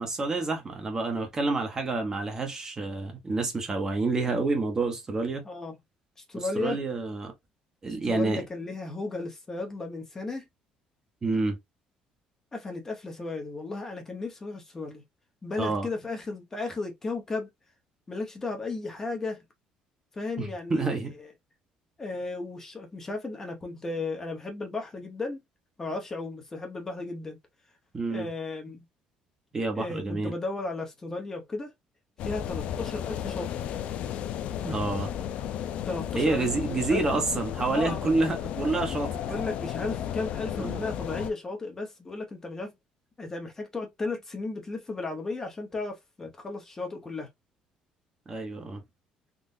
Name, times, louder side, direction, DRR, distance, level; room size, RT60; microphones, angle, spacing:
voice 1, 0.0-5.4 6.3-7.3 7.8-8.4 11.2-11.6 15.6-15.9 20.4-21.1 27.9-28.3 29.5-30.3 34.6-35.1 36.2-39.2 40.6-40.8 48.3-48.8, right 3 dB, 25° right, 1.0 m, -28 dB
voice 2, 5.4-5.8 6.2-6.8 7.9-10.4 12.5-15.0 15.4-17.5 18.1-19.4 20.1-21.3 22.0-25.4 25.8-27.4 28.1-28.8 29.7-31.7 32.2-33.5 35.9-37.0 37.7-38.1 39.1-42.7 43.2-47.3, left 3 dB, 20° left, 0.9 m, -35 dB
sound 1, 32.2-41.3, left 10 dB, 60° left, 0.4 m, -34 dB
3.8 x 2.4 x 2.6 m
cardioid pair, 140°, 2 cm